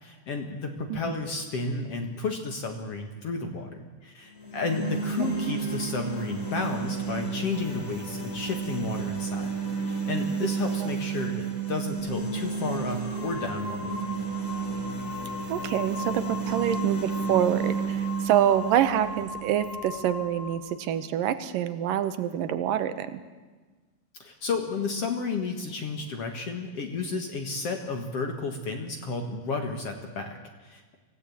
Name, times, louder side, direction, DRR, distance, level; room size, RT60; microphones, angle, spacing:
voice 1, 0.0-9.5 9.9-14.1 24.2-31.0, left 3 dB, 50° left, 4 dB, 2.4 m, -32 dB
sound 1, 4.3-20.3, right 5 dB, 25° left, 4.0 m, -32 dB
voice 2, 5.2-5.5 10.8-10.9 15.5-23.2, right 10 dB, 80° right, 11 dB, 2.7 m, -26 dB
sound 2, 11.9-12.1 12.9-20.6, left 4 dB, 65° left, 5.5 m, -40 dB
25.0 x 16.5 x 8.6 m, 1.3 s
omnidirectional pair, 3.9 m